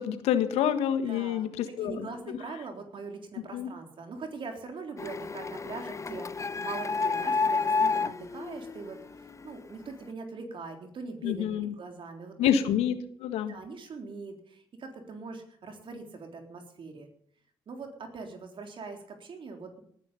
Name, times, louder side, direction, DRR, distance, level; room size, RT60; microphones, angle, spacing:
voice 1, 0.0-2.1 3.5-3.7 11.2-11.7 12.4-13.5, left 9 dB, 70° left, 10 dB, 1.6 m, -27 dB
voice 2, 1.1-1.5 1.8-12.5 13.5-17.1 17.7-19.8, right 4 dB, 50° right, 4 dB, 3.7 m, -42 dB
Printer, 5.0-9.6, left 4 dB, 25° left, 0.8 m, -30 dB
19.0 x 11.0 x 5.6 m, 0.65 s
hypercardioid pair, 45°, 11 cm